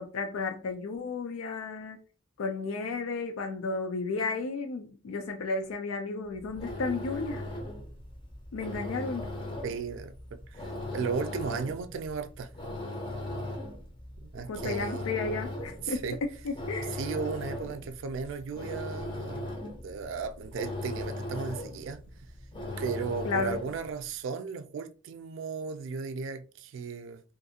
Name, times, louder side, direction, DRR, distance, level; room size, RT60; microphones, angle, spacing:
voice 1, 0.0-2.0 2.4-7.4 8.5-9.3 14.5-17.0 23.2-23.6, left 4 dB, 85° left, 0.4 m, -33 dB
sound 1, 6.3-23.9, left 1 dB, 25° left, 0.5 m, -38 dB
voice 2, 9.6-10.1 10.5-12.5 14.2-15.1 15.8-16.2 16.9-19.5 19.8-22.0 22.8-27.2, right 5 dB, 70° right, 0.3 m, -35 dB
2.6 x 2.4 x 2.7 m
head